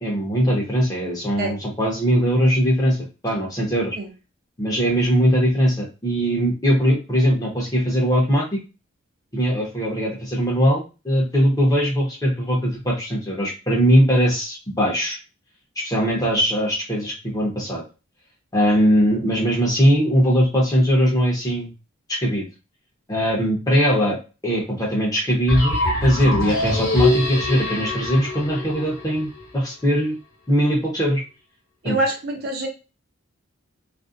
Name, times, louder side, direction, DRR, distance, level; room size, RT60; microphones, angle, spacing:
voice 1, 0.0-3.0 3.2-4.0 4.6-8.6 9.3-15.2 15.8-17.8 18.5-21.7 22.1-22.5 23.1-30.2 30.5-31.2 31.8-32.0, equal, 15° left, -3 dB, 0.7 m, -20 dB
sound 1, 25.5-29.4, left 2 dB, 65° left, 1.0 m, -24 dB
voice 2, 31.8-32.7, right 2 dB, 45° right, 1 dB, 0.6 m, -25 dB
2.5 x 2.1 x 2.4 m, 0.30 s
head